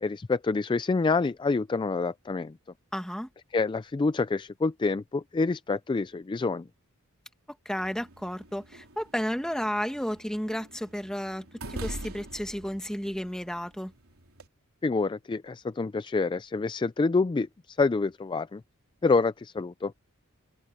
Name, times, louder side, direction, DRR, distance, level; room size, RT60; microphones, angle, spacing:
voice 1, 0.0-2.5 3.5-6.7 14.8-18.6 19.0-19.9, left 3 dB, 20° left, 0.3 m, -27 dB
voice 2, 2.9-3.3 7.5-13.9, equal, 5° left, 1.7 m, -32 dB
sound 1, 7.8-14.5, right 1 dB, 75° right, 3.7 m, -44 dB
open air
head